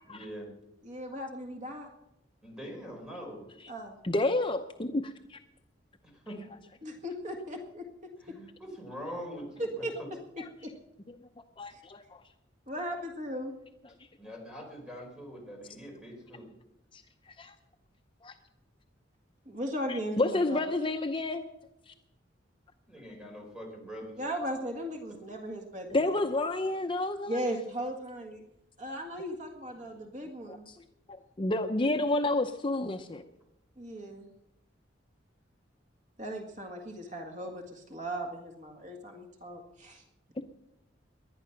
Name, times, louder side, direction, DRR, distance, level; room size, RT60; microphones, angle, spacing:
voice 1, 0.0-0.5 2.4-3.4 6.0-6.4 8.2-10.1 14.2-16.5 22.9-24.2, equal, 5° right, 0 dB, 4.9 m, -43 dB
voice 2, 0.8-1.9 3.7-4.0 6.8-7.9 8.3-8.4 9.6-9.9 10.6-10.7 11.7-11.8 12.7-13.5 19.5-20.6 24.2-26.1 27.3-28.4 28.8-30.6 33.8-34.3 36.2-40.0, equal, 40° right, 3 dB, 1.8 m, -37 dB
voice 3, 4.0-5.1 11.6-12.0 17.4-17.5 18.2-18.3 20.2-21.4 25.9-27.4 30.5-30.6 31.4-33.2, left 2 dB, 25° left, 5 dB, 0.7 m, -29 dB
19.5 x 11.5 x 5.8 m, 0.88 s
head